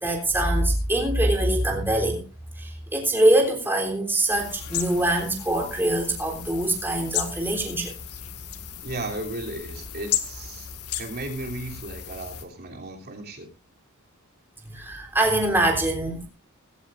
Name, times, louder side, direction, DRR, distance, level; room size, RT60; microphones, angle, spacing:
voice 1, 0.0-2.2 2.6-7.9 14.7-16.3, right 1 dB, 10° right, 0 dB, 3.6 m, -23 dB
sound 1, 4.3-12.4, left 9 dB, 90° left, 2.0 m, -34 dB
voice 2, 8.8-10.7 11.0-13.5, right 1 dB, 45° right, 1 dB, 3.2 m, -35 dB
17.5 x 16.5 x 2.6 m, 0.32 s
head